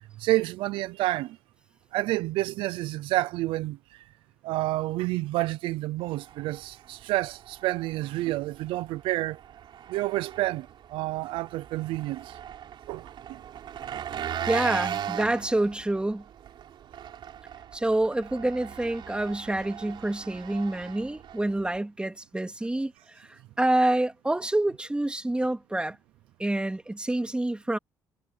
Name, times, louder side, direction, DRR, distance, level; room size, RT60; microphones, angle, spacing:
voice 1, 0.2-1.4 1.9-4.0 4.4-9.4 9.9-12.4 12.9-13.4, right 17 dB, 85° right, 0.6 m, -29 dB
Engine, 6.0-21.8, right 10 dB, 65° right, 4.4 m, -39 dB
voice 2, 14.5-16.2 17.7-26.0 26.4-27.8, right 1 dB, 10° right, 3.2 m, -27 dB
cardioid pair, 80°, 9 cm